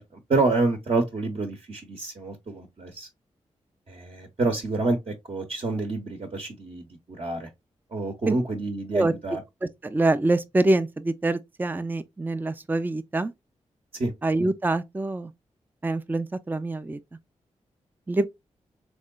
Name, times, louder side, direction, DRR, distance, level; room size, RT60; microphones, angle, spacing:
voice 1, 0.3-3.1 3.9-6.9 7.2-7.5 7.9-9.4 13.9-14.1, right 3 dB, 50° right, 0.9 m, -28 dB
voice 2, 9.6-13.3 14.2-15.3 15.8-17.0 18.1-18.3, right 2 dB, 15° right, 0.4 m, -25 dB
3.7 x 3.0 x 2.3 m
cardioid pair, 55°, 12 cm